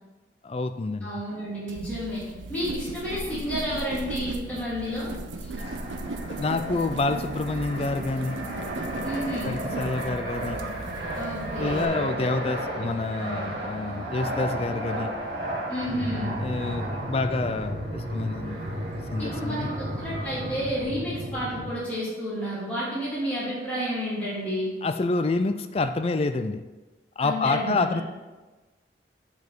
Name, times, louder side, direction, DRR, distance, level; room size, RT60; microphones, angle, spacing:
voice 1, 0.4-1.1 6.3-8.4 9.4-10.6 11.6-15.1 16.4-18.7 19.1-19.7 24.8-26.6 27.2-28.0, left 3 dB, 30° left, 9 dB, 0.4 m, -28 dB
voice 2, 1.0-5.1 9.0-9.6 11.1-11.9 15.7-16.4 19.2-24.7 27.2-28.0, equal, 10° left, -10 dB, 2.4 m, -31 dB
sound 1, 1.7-11.8, right 3 dB, 80° right, 0.6 m, -37 dB
Fixed-wing aircraft airplane, 5.6-20.8, right 1 dB, 60° right, 2.4 m, -34 dB
sound 2, 15.8-21.7, equal, 35° right, 1.1 m, -34 dB
8.0 x 5.2 x 4.6 m, 1.2 s
head